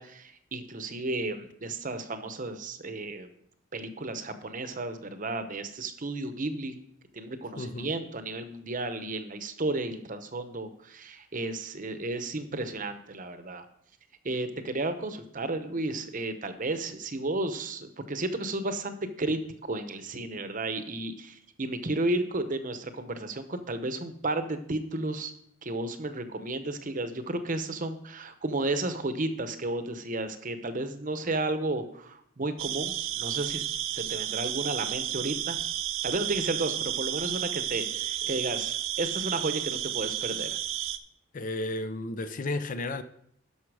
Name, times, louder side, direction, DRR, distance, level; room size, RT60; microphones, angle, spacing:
voice 1, 0.0-3.3 3.7-6.8 7.1-13.7 14.2-19.4 19.7-25.3 25.6-33.6 33.9-35.6 36.0-40.5, right 2 dB, 40° right, 0.9 m, -33 dB
voice 2, 7.6-8.0 37.9-38.5 41.3-43.0, left 2 dB, 40° left, 0.5 m, -34 dB
sound 1, 32.6-41.0, right 12 dB, 70° right, 0.6 m, -32 dB
12.0 x 5.7 x 4.8 m
head